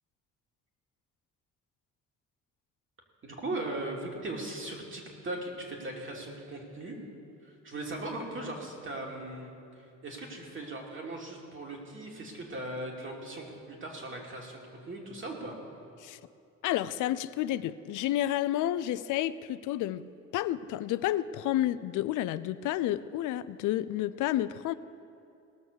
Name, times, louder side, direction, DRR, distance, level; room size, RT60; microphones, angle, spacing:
voice 1, 3.2-7.0 7.4-9.5 10.0-15.6, right 2 dB, 40° right, 0 dB, 2.7 m, -38 dB
voice 2, 16.6-20.1 20.3-24.7, left 13 dB, 85° left, 15 dB, 0.5 m, -30 dB
18.5 x 6.3 x 6.8 m, 2.7 s
cardioid pair, 90°, 30 cm